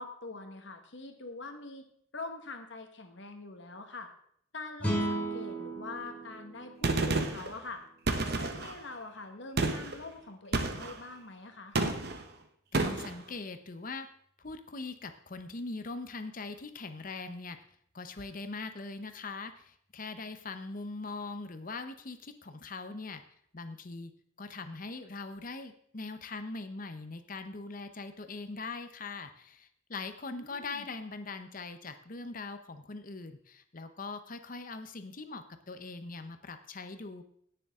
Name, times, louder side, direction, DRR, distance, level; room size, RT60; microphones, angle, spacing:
voice 1, 0.0-1.8 2.1-4.1 4.5-7.8 8.2-11.7 30.3-30.9, left 3 dB, 60° left, 5 dB, 1.5 m, -44 dB
sound 1, 4.8-8.1, right 1 dB, 5° left, 2.7 m, -36 dB
Gunshot gunfire, 6.8-7.5 8.1-8.8 9.6-10.0 10.5-11.0 11.8-12.2 12.7-13.2, right 2 dB, 50° right, 1.0 m, -30 dB
voice 2, 12.7-14.1 14.4-17.6 17.9-23.2 23.5-24.1 24.4-37.2, left 3 dB, 40° left, 9 dB, 0.8 m, -41 dB
16.5 x 6.9 x 3.7 m, 0.66 s
head